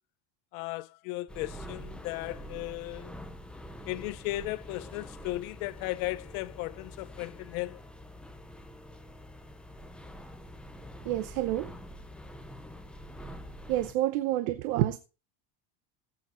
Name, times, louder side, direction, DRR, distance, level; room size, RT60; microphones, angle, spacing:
voice 1, 0.5-3.1 3.9-7.8, left 19 dB, 85° left, 0.7 m, -36 dB
sound 1, 1.3-13.9, equal, 5° left, 0.6 m, -46 dB
voice 2, 11.0-11.7 13.7-15.0, right 14 dB, 75° right, 0.9 m, -28 dB
16.5 x 8.5 x 2.5 m
cardioid pair, 170°, 41 cm